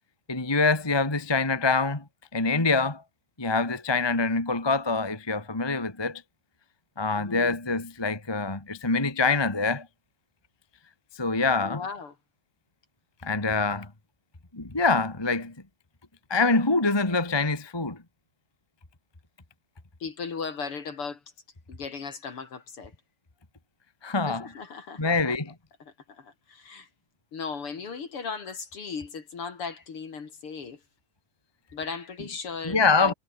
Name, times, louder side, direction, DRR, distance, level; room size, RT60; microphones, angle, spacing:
voice 1, 0.3-2.0 2.3-3.0 3.4-6.2 7.0-9.9 11.1-11.8 13.2-13.9 14.5-15.5 16.3-18.0 24.0-24.5 25.0-25.5 32.6-33.1, left 3 dB, 10° left, 1.2 m, -25 dB
voice 2, 7.2-7.6 11.6-12.1 20.0-21.2 21.7-22.9 24.3-25.3 25.8-26.9 27.3-30.8 31.7-33.1, left 5 dB, 40° left, 2.9 m, -37 dB
omnidirectional pair, 4.2 m